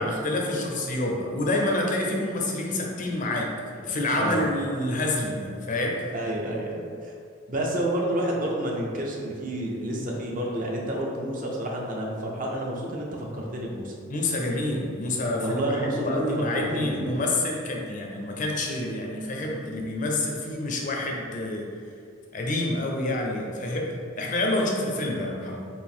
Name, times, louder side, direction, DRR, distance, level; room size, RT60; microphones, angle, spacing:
voice 1, 0.0-6.0 14.1-21.7 22.3-25.7, left 1 dB, 40° left, 0 dB, 0.5 m, -28 dB
voice 2, 6.1-7.1 7.5-13.9 15.4-17.0, right 1 dB, 40° right, -1 dB, 0.6 m, -29 dB
4.3 x 2.6 x 3.6 m, 2.3 s
head